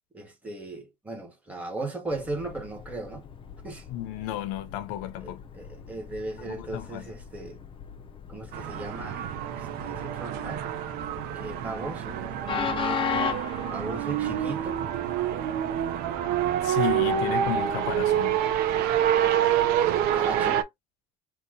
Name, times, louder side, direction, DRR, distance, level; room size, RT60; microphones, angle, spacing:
voice 1, 0.1-3.2 3.6-3.8 5.2-7.6 8.3-10.7 11.3-12.2 13.7-14.8 17.0-17.2 20.0-20.6, right 2 dB, 10° right, 1.2 m, -37 dB
Train, 2.1-20.6, left 6 dB, 30° left, 0.5 m, -38 dB
voice 2, 3.9-5.4 6.4-7.1 16.6-18.4, left 12 dB, 80° left, 0.7 m, -33 dB
sound 1, 8.5-20.6, right 10 dB, 65° right, 0.6 m, -27 dB
2.9 x 2.2 x 3.7 m
cardioid pair, 135°, 18 cm